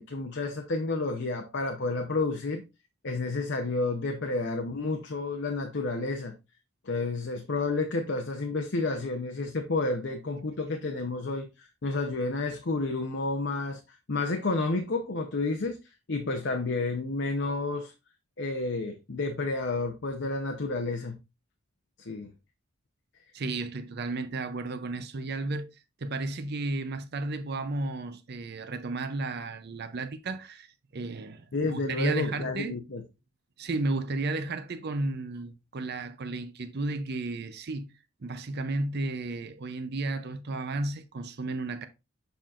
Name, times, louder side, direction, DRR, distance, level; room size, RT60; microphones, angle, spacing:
voice 1, 0.0-2.6 3.0-6.3 6.8-15.8 16.1-17.9 18.4-21.2 22.0-22.3 31.5-33.0, left 3 dB, 55° left, 0.7 m, -30 dB
voice 2, 23.3-25.7 26.0-32.8 33.6-37.9 38.2-41.9, right 2 dB, 50° right, 0.6 m, -33 dB
6.9 x 5.7 x 2.5 m
head